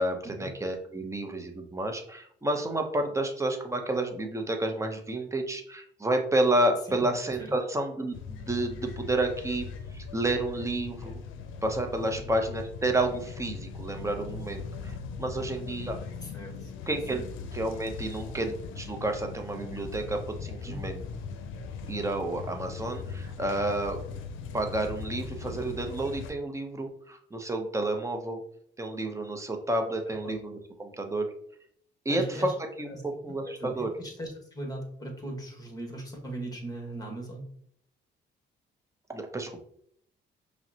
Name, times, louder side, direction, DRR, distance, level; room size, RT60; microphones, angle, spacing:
voice 1, 0.0-9.7 9.9-11.2 11.6-16.0 16.9-17.3 17.5-21.0 21.9-24.0 24.5-28.4 28.8-31.3 32.0-33.9 39.1-39.6, right 1 dB, 15° right, 4 dB, 0.7 m, -30 dB
sound 1, 8.1-26.3, left 5 dB, 90° left, 0.5 m, -40 dB
voice 2, 16.2-16.7 17.1-17.2 20.6-20.8 30.1-30.4 32.1-32.5 32.9-33.0 33.3-33.7 34.0-37.5, right 1 dB, 20° left, 1 dB, 1.3 m, -39 dB
5.4 x 2.1 x 2.8 m, 0.67 s
cardioid pair, 90°, 20 cm